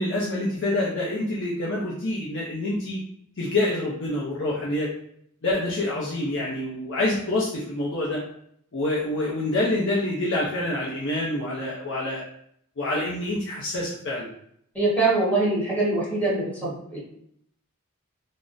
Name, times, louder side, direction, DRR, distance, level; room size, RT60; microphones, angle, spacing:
voice 1, 0.0-3.0 3.4-4.9 5.4-8.2 8.7-12.2 12.8-14.3, left 1 dB, 55° left, -5 dB, 0.6 m, -26 dB
voice 2, 14.7-17.0, right 2 dB, 5° left, -8 dB, 1.2 m, -23 dB
3.5 x 2.0 x 2.5 m, 0.69 s
head